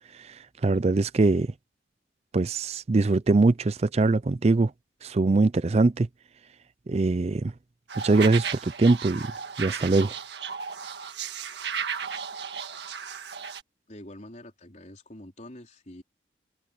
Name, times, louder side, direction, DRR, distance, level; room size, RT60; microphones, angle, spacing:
voice 1, 0.1-1.5 2.3-4.7 5.0-6.1 6.9-7.5 8.0-9.3 9.6-10.2, right 3 dB, 35° right, 0.4 m, -22 dB
sound 1, 7.9-13.6, right 6 dB, 65° right, 1.7 m, -35 dB
voice 2, 13.9-16.0, left 1 dB, 40° left, 4.3 m, -45 dB
head